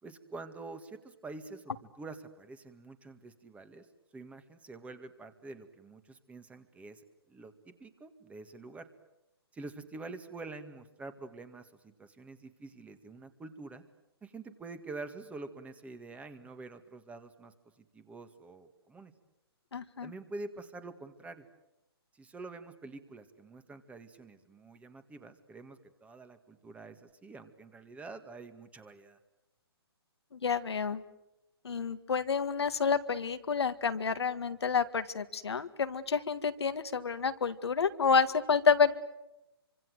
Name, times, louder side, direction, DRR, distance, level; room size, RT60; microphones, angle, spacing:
voice 1, 0.0-3.9 4.1-7.0 7.3-8.9 9.5-13.8 14.2-19.1 20.0-21.5 22.1-29.2, right 3 dB, 10° right, 10 dB, 1.9 m, -47 dB
voice 2, 19.7-20.1 30.3-31.0 31.6-38.9, left 5 dB, 80° left, 9 dB, 1.8 m, -29 dB
27.5 x 25.5 x 7.9 m, 0.91 s
hypercardioid pair, 135°, 14 cm